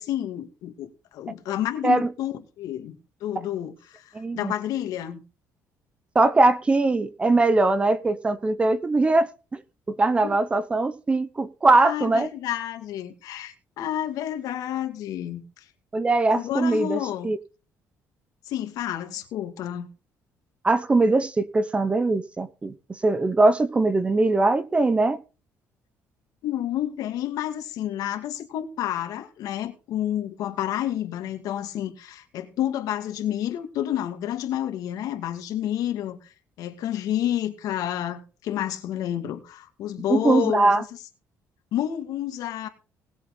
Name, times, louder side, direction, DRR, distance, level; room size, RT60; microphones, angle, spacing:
voice 1, 0.0-5.2 10.2-10.4 11.8-15.7 16.3-17.3 18.5-19.9 26.4-36.3 36.6-40.9 41.7-42.7, left 11 dB, 75° left, 2.3 m, -30 dB
voice 2, 4.1-4.5 6.1-9.6 9.9-12.3 15.9-17.4 20.6-22.7 23.0-25.2 40.1-40.8, right 2 dB, 20° right, 0.9 m, -21 dB
19.5 x 7.8 x 3.9 m
cardioid pair, 145°, 6 cm